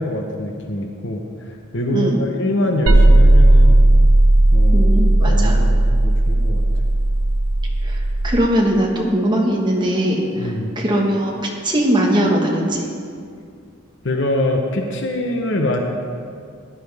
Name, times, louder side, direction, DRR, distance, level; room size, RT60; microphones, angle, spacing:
voice 1, 0.0-3.8 4.5-4.9 5.2-6.6 10.4-10.7 14.0-15.8, left 1 dB, 55° left, 2 dB, 0.9 m, -24 dB
sound 1, 2.9-8.4, right 1 dB, 85° right, 0.8 m, -14 dB
voice 2, 4.7-5.6 7.8-12.8, right 1 dB, 20° right, -1 dB, 1.3 m, -20 dB
15.5 x 10.0 x 3.5 m, 2.3 s
head